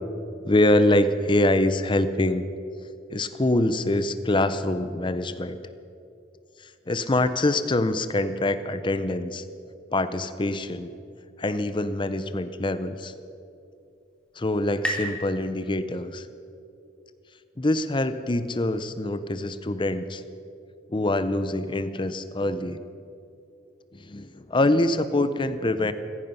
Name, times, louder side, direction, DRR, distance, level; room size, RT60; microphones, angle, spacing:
voice 1, 0.4-2.5 3.1-5.6 6.9-9.4 9.9-10.9 11.4-13.1 14.4-16.3 17.6-20.2 20.9-22.8 23.9-25.9, left 1 dB, 25° left, 12 dB, 0.7 m, -24 dB
sound 1, 13.4-16.7, equal, 5° left, 2.1 m, -37 dB
15.5 x 15.5 x 5.5 m, 2.7 s
head